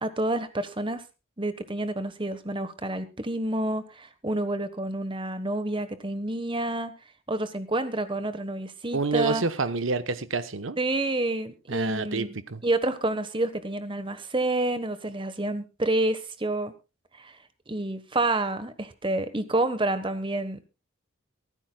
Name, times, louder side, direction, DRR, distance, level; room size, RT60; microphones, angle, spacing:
voice 1, 0.0-1.0 1.4-6.9 7.3-9.4 10.8-12.4 12.6-16.7 17.1-17.4 17.7-20.7, right 2 dB, 25° right, 1.2 m, -29 dB
voice 2, 8.9-10.8 11.7-12.6, right 4 dB, 65° right, 1.0 m, -28 dB
23.5 x 12.0 x 2.3 m
head